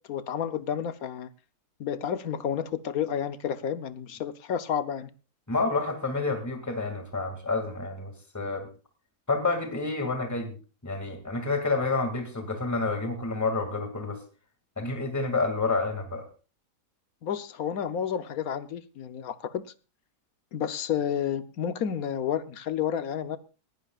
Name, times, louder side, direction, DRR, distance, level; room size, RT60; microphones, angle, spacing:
voice 1, 0.1-1.3 1.8-5.1 17.2-19.6 20.5-23.4, left 8 dB, 65° left, 1.3 m, -30 dB
voice 2, 5.5-8.7 9.3-10.6 10.8-14.2 14.8-16.2, left 3 dB, 10° left, 2.3 m, -29 dB
20.0 x 15.5 x 2.4 m
omnidirectional pair, 1.7 m